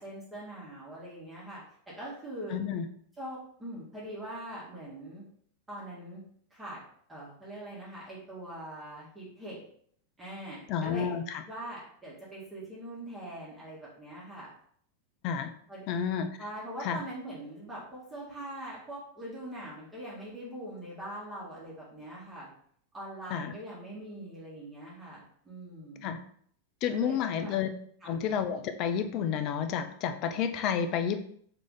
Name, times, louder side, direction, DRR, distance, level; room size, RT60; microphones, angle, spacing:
voice 1, 0.0-2.6 3.2-5.2 5.7-6.2 6.5-6.8 7.1-9.6 10.2-11.1 11.4-14.5 15.7-15.8 16.4-22.5 22.9-26.1 26.9-27.5 28.0-28.1, right 1 dB, 10° right, -8 dB, 1.5 m, -42 dB
voice 2, 2.5-2.9 10.7-11.4 15.2-15.5 15.9-16.3 16.8-17.0 23.3-23.5 26.0-26.2 26.8-27.7 28.0-31.2, left 8 dB, 40° left, 8 dB, 0.4 m, -30 dB
3.8 x 3.3 x 3.7 m, 0.62 s
figure-of-eight pair, 90°, 0 cm